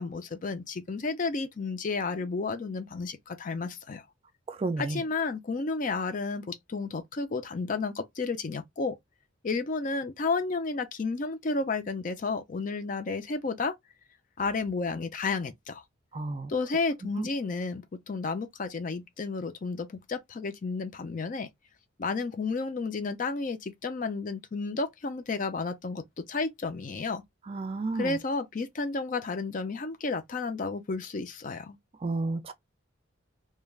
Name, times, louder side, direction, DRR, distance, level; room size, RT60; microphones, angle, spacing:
voice 1, 0.0-4.0 4.8-9.0 9.4-13.7 14.4-15.8 16.5-21.5 22.0-27.2 27.9-31.8, left 4 dB, 40° left, 0.4 m, -32 dB
voice 2, 4.5-5.0 16.1-16.5 17.2-17.3 27.5-28.2 32.0-32.5, right 3 dB, 30° right, 0.3 m, -31 dB
3.2 x 2.2 x 2.3 m
head